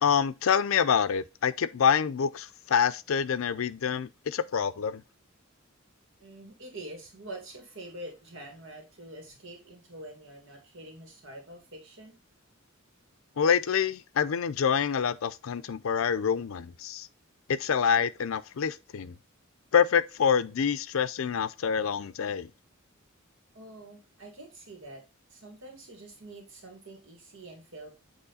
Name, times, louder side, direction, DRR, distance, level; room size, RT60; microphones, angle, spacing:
voice 1, 0.0-5.0 13.4-17.1 17.5-19.1 19.7-22.5, left 7 dB, 70° left, 0.4 m, -26 dB
voice 2, 6.2-12.2 23.5-25.0 25.3-27.9, right 1 dB, 65° right, 1.9 m, -46 dB
8.1 x 3.1 x 4.0 m
head